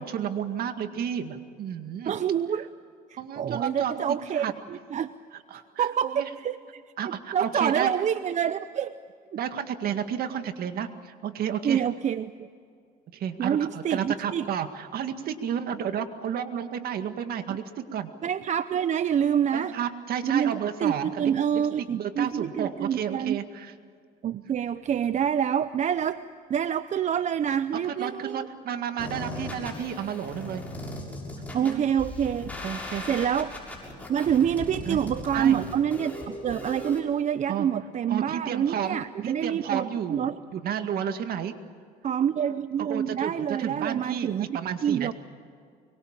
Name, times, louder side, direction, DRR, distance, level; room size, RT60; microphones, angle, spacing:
voice 1, 0.0-2.1 2.5-2.7 3.2-4.0 4.3-4.5 5.5-6.2 7.0-7.9 9.3-11.9 13.1-17.6 17.9-18.1 19.5-23.7 24.3-24.4 27.7-30.6 31.6-31.8 32.6-33.0 34.9-35.0 35.3-35.6 37.5-37.7 38.1-41.5 42.8-45.1, right 8 dB, 65° right, 8 dB, 2.0 m, -32 dB
voice 2, 2.0-2.7 3.1-4.5 4.9-5.1 5.8-9.0 11.6-12.5 13.4-14.5 18.2-19.7 20.2-23.4 24.2-26.2 26.5-28.4 31.5-32.5 33.1-33.5 34.1-40.4 42.0-45.1, right 8 dB, 45° right, 13 dB, 0.7 m, -27 dB
sound 1, 29.0-37.0, left 1 dB, 10° left, 6.8 m, -38 dB
24.5 x 23.0 x 7.4 m, 2.3 s
cardioid pair, 110°, 17 cm